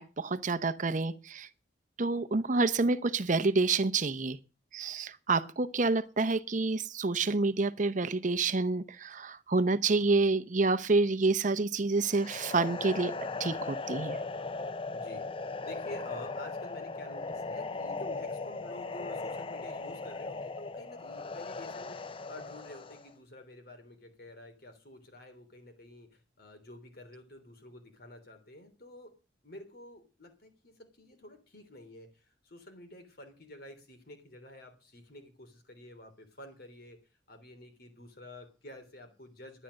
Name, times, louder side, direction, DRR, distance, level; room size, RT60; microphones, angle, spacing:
voice 1, 0.0-1.5 2.0-4.4 4.7-13.1 13.4-14.2, right 3 dB, 45° right, 0.8 m, -28 dB
sound 1, 12.0-23.1, left 3 dB, 30° left, 0.5 m, -38 dB
voice 2, 14.9-15.3 15.6-29.2 29.4-37.0 37.3-39.6, left 2 dB, 55° left, 3.2 m, -49 dB
12.0 x 10.0 x 6.4 m
head